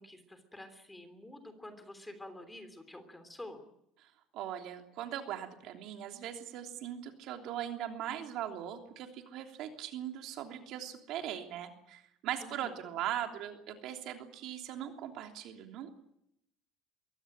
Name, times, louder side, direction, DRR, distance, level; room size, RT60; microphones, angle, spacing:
voice 1, 0.0-3.7 12.4-12.9, left 1 dB, 10° left, 9 dB, 3.2 m, -49 dB
voice 2, 4.3-15.9, right 10 dB, 65° right, 4 dB, 3.2 m, -40 dB
23.0 x 17.0 x 8.9 m, 0.78 s
cardioid pair, 140°, 0 cm